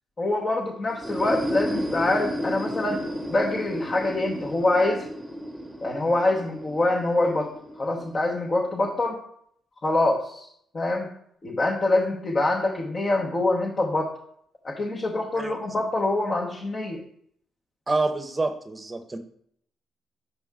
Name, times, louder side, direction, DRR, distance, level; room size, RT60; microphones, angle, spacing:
voice 1, 0.2-3.0 3.3-5.0 5.8-7.5 7.8-9.2 9.8-10.5 10.7-11.1 11.4-14.1 14.6-17.0, left 2 dB, 35° left, -2 dB, 1.1 m, -25 dB
sound 1, 0.9-8.5, equal, ahead, 1.4 m, -33 dB
voice 2, 17.9-19.2, right 3 dB, 20° right, 7 dB, 0.9 m, -27 dB
6.8 x 5.1 x 3.6 m, 0.67 s
cardioid pair, 90°, 0 cm